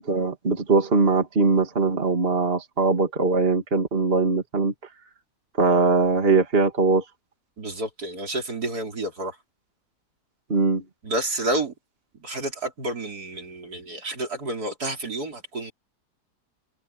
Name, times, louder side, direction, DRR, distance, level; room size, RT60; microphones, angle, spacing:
voice 1, 0.0-4.7 5.6-7.0 10.5-10.8, right 3 dB, 35° right, 2.5 m, -21 dB
voice 2, 7.6-9.4 11.0-11.7 12.1-15.7, right 1 dB, 65° right, 4.6 m, -30 dB
omnidirectional pair, 1.8 m